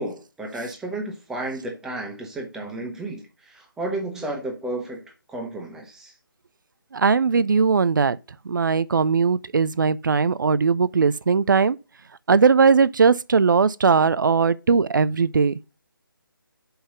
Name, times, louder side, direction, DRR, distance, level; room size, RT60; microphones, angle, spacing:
voice 1, 0.0-5.0 5.3-6.1, right 1 dB, 5° right, 1.2 m, -32 dB
voice 2, 6.9-8.2 8.5-11.8 12.3-15.5, right 5 dB, 60° right, 0.5 m, -19 dB
5.7 x 5.6 x 6.5 m
figure-of-eight pair, 150°, 12 cm